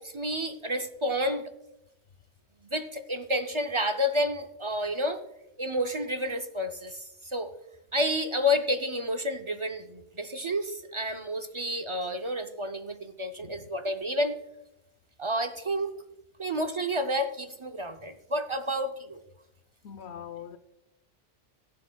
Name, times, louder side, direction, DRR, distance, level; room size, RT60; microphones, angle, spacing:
voice 1, 0.0-1.5 2.7-5.2 5.6-7.5 7.9-14.3 15.2-15.9 16.4-19.2, equal, 40° right, 0.5 m, -30 dB
voice 2, 19.8-20.6, left 8 dB, 70° left, 0.8 m, -42 dB
17.0 x 11.5 x 2.2 m
omnidirectional pair, 1.2 m